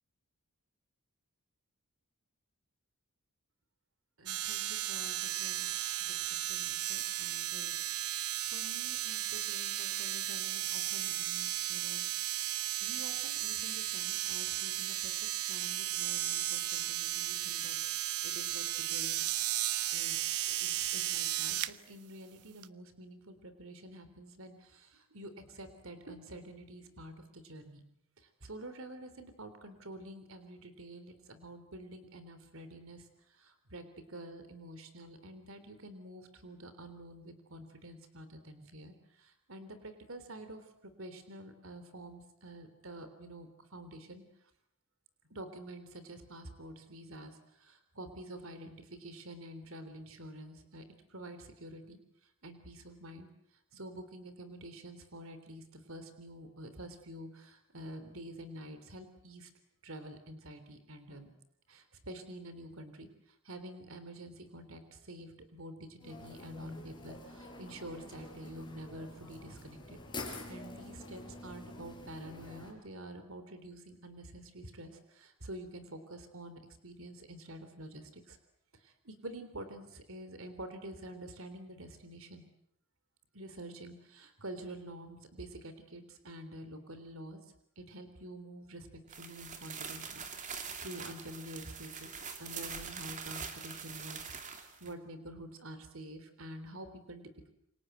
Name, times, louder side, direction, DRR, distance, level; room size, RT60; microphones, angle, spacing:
voice 1, 4.2-5.7 6.1-6.2 6.5-7.8 8.1-12.0 12.8-19.2 19.9-20.2 20.6-27.8 28.4-33.1 33.4-44.2 45.3-50.8 51.1-52.0 52.4-53.3 53.7-59.5 59.8-61.3 61.7-63.1 63.4-70.0 70.5-78.4 78.8-82.4 83.3-87.4 87.8-92.1 92.4-97.5, right 1 dB, 60° right, 10 dB, 3.6 m, -48 dB
sound 1, 4.3-21.7 22.6-22.7, right 13 dB, 85° right, 1.0 m, -35 dB
sound 2, 66.0-72.7, left 2 dB, 20° left, 5.3 m, -47 dB
sound 3, 89.1-94.9, right 6 dB, 35° right, 2.9 m, -44 dB
28.5 x 25.0 x 8.0 m, 0.73 s
head